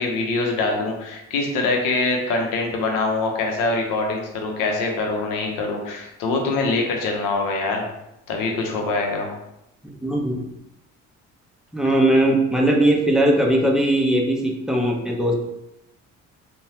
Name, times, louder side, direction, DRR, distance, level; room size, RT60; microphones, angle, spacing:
voice 1, 0.0-7.9 8.3-9.3, left 3 dB, 85° left, 2 dB, 0.7 m, -24 dB
voice 2, 9.8-10.4 11.7-15.3, right 1 dB, ahead, 0 dB, 0.6 m, -19 dB
3.1 x 2.2 x 2.7 m, 0.87 s
supercardioid pair, 80°, 32 cm